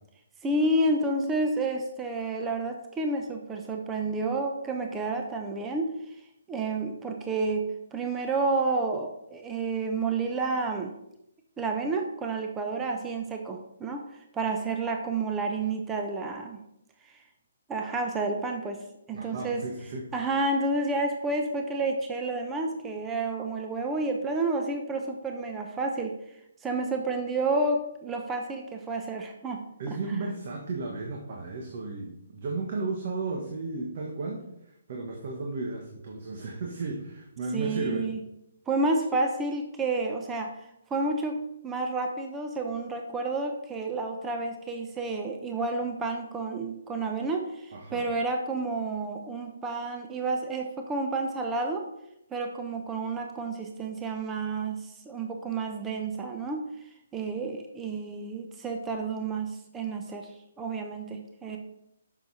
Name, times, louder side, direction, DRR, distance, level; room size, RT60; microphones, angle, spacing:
voice 1, 0.4-6.1 6.5-7.6 7.9-10.9 11.6-16.6 17.0-17.2 17.7-19.6 20.1-26.1 26.6-29.6 37.5-38.2 38.7-40.5 40.9-41.4 41.6-51.9 52.3-56.6 57.1-60.3 60.6-61.6, right 3 dB, 15° right, 3 dB, 0.8 m, -30 dB
voice 2, 19.1-20.1 29.8-38.1 47.7-48.0, right 3 dB, 50° right, 0 dB, 1.4 m, -34 dB
8.4 x 6.4 x 4.2 m, 0.82 s
hypercardioid pair, 145°, 0 cm